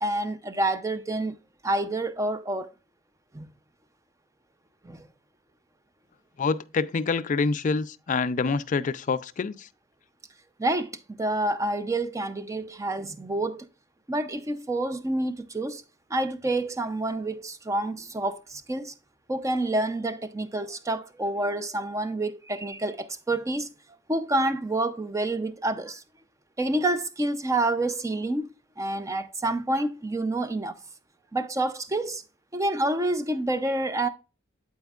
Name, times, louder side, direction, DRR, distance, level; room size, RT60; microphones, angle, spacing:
voice 1, 0.0-1.4 1.6-2.7 3.3-3.5 4.8-5.1 10.6-13.6 14.1-15.8 16.1-18.9 19.3-23.7 24.1-26.0 26.6-28.5 28.8-30.8 31.3-32.2 32.5-34.1, right 2 dB, 15° right, 0.5 m, -28 dB
voice 2, 6.4-9.5, left 4 dB, 40° left, 0.4 m, -26 dB
11.5 x 4.4 x 2.4 m
head